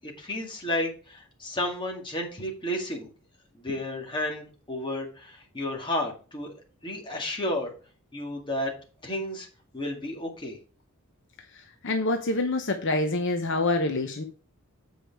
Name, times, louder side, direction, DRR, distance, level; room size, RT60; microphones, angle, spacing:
voice 1, 0.0-3.1 3.6-6.5 6.8-7.7 8.1-8.7 9.0-9.5 9.7-10.6, left 1 dB, 20° left, 0 dB, 2.0 m, -32 dB
voice 2, 11.5-14.2, left 2 dB, 55° left, 5 dB, 0.9 m, -26 dB
8.1 x 4.9 x 4.7 m, 0.37 s
head